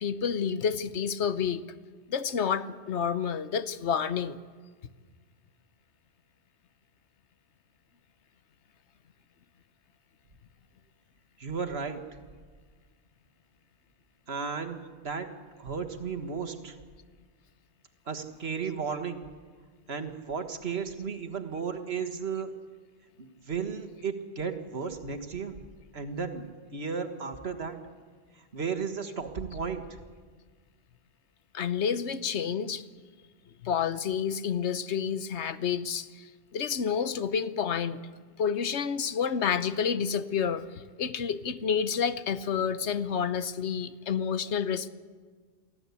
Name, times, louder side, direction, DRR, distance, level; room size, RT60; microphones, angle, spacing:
voice 1, 0.0-1.6 2.1-4.4 31.5-32.8 33.6-36.2 36.5-38.0 38.4-40.6 41.0-44.9, left 7 dB, 80° left, 13 dB, 1.2 m, -29 dB
voice 2, 11.4-12.0 14.3-15.3 15.6-16.8 18.1-19.2 19.9-22.5 23.2-25.5 25.9-26.5 26.7-27.8 28.5-30.0, right 5 dB, 65° right, 6 dB, 1.8 m, -34 dB
24.0 x 15.0 x 8.3 m, 1.5 s
omnidirectional pair, 1.1 m